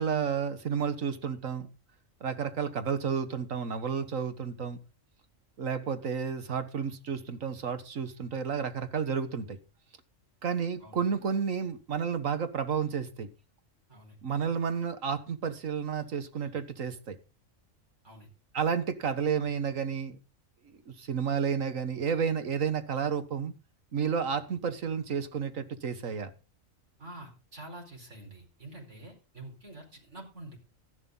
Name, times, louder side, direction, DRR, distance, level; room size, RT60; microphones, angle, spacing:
voice 1, 0.0-1.7 2.2-4.8 5.6-9.6 10.4-13.3 14.2-17.2 18.5-20.2 20.9-23.5 23.9-26.3, right 6 dB, 90° right, 1.8 m, -31 dB
voice 2, 13.9-14.4 18.0-18.3 27.0-30.6, right 1 dB, 65° right, 5.1 m, -47 dB
14.0 x 11.0 x 3.9 m
omnidirectional pair, 1.3 m